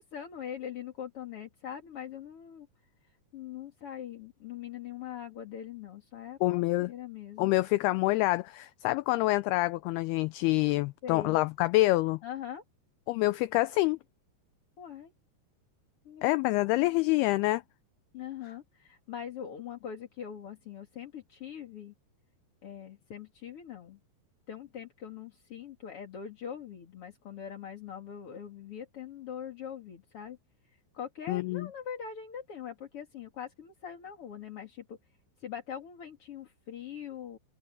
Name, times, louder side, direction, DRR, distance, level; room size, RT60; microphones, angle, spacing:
voice 1, 0.0-2.7 3.3-7.5 11.0-11.4 12.2-12.6 14.8-15.1 16.1-16.9 18.1-21.9 22.6-24.0 24.5-30.4 30.9-35.0 35.4-37.4, left 8 dB, 40° left, 2.5 m, -42 dB
voice 2, 6.4-6.9 7.4-12.2 13.1-14.0 16.2-17.6 31.3-31.7, left 19 dB, 85° left, 2.2 m, -26 dB
open air
omnidirectional pair, 5.0 m